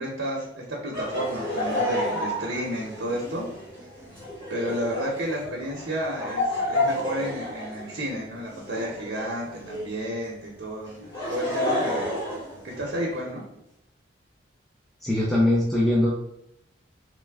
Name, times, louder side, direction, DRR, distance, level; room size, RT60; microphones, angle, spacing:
voice 1, 0.0-3.4 4.5-10.9 11.3-12.2 12.6-13.4, equal, 75° right, -4 dB, 0.7 m, -31 dB
Laughter, 0.9-10.0 10.9-13.2, left 1 dB, 25° left, 1.4 m, -30 dB
voice 2, 15.0-16.2, left 1 dB, ahead, -6 dB, 0.4 m, -21 dB
3.1 x 2.1 x 3.4 m, 0.81 s
head